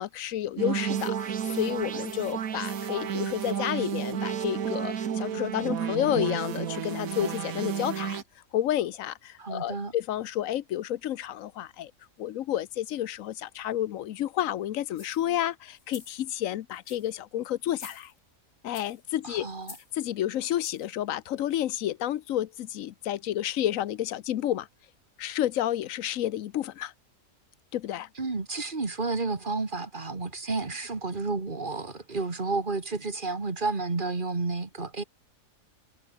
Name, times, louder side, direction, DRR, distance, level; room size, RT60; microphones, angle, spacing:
voice 1, 0.0-8.2 8.5-11.9 12.2-18.1 18.6-19.5 19.9-24.7 25.2-26.9 27.7-28.1, left 12 dB, 75° left, 1.1 m, -30 dB
sound 1, 0.6-8.2, right 8 dB, 90° right, 1.7 m, -31 dB
voice 2, 9.4-9.9 19.2-19.8 28.2-35.0, right 3 dB, 35° right, 2.1 m, -31 dB
sound 2, 14.9-15.3 15.8-16.2 16.7-17.2 17.6-18.3 18.7-19.0 19.6-20.0 20.6-20.9 21.5-21.6, left 3 dB, 55° left, 3.7 m, -49 dB
omnidirectional pair, 1.4 m